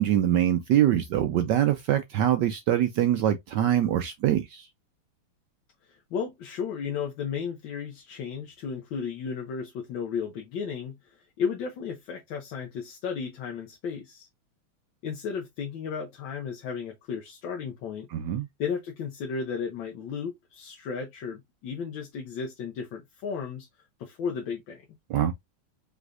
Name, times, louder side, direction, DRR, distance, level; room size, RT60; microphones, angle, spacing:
voice 1, 0.0-4.7 18.1-18.5 25.1-25.3, right 11 dB, 75° right, 1.0 m, -24 dB
voice 2, 5.9-14.3 15.0-18.1 18.6-23.7 24.0-24.8, left 6 dB, 65° left, 1.5 m, -34 dB
5.3 x 3.5 x 2.5 m
omnidirectional pair, 2.4 m